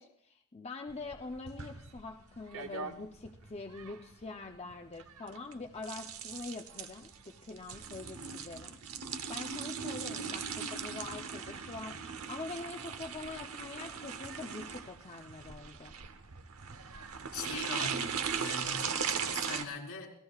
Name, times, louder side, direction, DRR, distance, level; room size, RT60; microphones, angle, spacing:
voice 1, 0.0-8.8 9.3-16.0, left 3 dB, 30° left, 3 dB, 0.7 m, -44 dB
sound 1, 0.9-19.6, right 6 dB, 75° right, 1.0 m, -39 dB
voice 2, 17.3-20.1, left 4 dB, 80° left, 0 dB, 3.6 m, -41 dB
28.5 x 17.0 x 2.4 m, 0.68 s
head